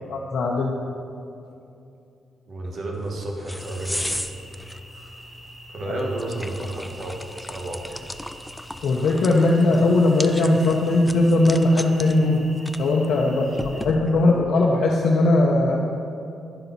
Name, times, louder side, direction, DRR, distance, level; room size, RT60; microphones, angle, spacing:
voice 1, 0.1-0.7 8.8-12.4 12.8-15.8, left 2 dB, 70° left, -2 dB, 0.7 m, -19 dB
voice 2, 2.5-4.2 5.7-8.0 13.2-13.8, right 1 dB, 50° right, 0 dB, 1.3 m, -32 dB
sound 1, 2.9-14.4, left 1 dB, 5° left, 0.3 m, -37 dB
sound 2, 3.6-13.9, equal, 20° right, 1.4 m, -46 dB
10.0 x 5.9 x 4.0 m, 2.6 s
cardioid pair, 120°, 0 cm